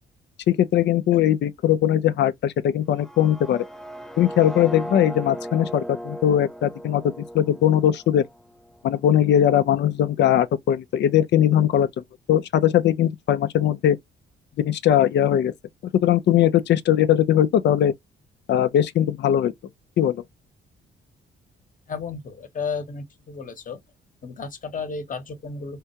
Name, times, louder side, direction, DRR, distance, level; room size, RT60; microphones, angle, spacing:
voice 1, 0.5-3.6 4.2-8.2 8.8-11.9 12.3-14.0 14.6-15.5 15.9-17.9 18.5-19.5 20.0-20.2, left 10 dB, 60° left, 0.5 m, -20 dB
sound 1, 2.9-8.9, equal, ahead, 0.4 m, -37 dB
voice 2, 21.9-23.8 24.2-25.8, left 5 dB, 40° left, 1.0 m, -33 dB
3.6 x 2.3 x 2.8 m
cardioid pair, 90°, 20 cm